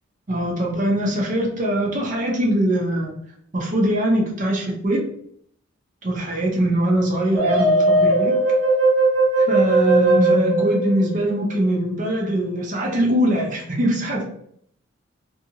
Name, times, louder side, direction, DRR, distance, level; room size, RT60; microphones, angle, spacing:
voice 1, 0.3-3.1 3.5-5.0 6.0-8.3 9.5-14.2, right 1 dB, 40° right, -1 dB, 0.6 m, -22 dB
sound 1, 7.4-11.6, right 2 dB, 80° right, 0.6 m, -18 dB
2.7 x 2.7 x 2.6 m, 0.66 s
head